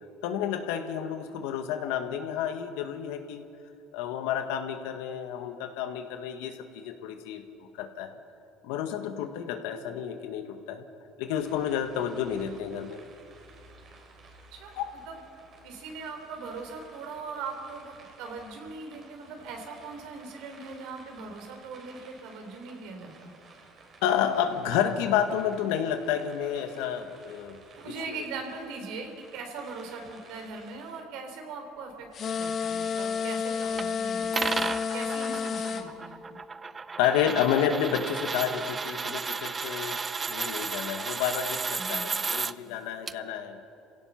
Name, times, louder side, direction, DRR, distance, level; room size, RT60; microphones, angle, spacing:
voice 1, 0.2-3.4 3.9-8.2 8.6-10.8 11.2-13.0 14.7-14.9 24.0-27.6 28.1-28.2 37.0-40.0 40.3-43.6, left 9 dB, 85° left, 7 dB, 1.6 m, -30 dB
sound 1, 11.4-31.0, right 3 dB, 45° right, 3.5 m, -54 dB
voice 2, 15.6-23.3 27.7-36.4 41.8-42.1, right 4 dB, 75° right, 4 dB, 3.6 m, -40 dB
sound 2, 32.1-35.8, left 6 dB, 50° left, 1.6 m, -30 dB
sound 3, 33.8-33.9 34.3-42.5 43.1-43.2, right 4 dB, 25° right, 0.5 m, -33 dB
26.5 x 16.5 x 5.8 m, 2.8 s
supercardioid pair, 95°, 0 cm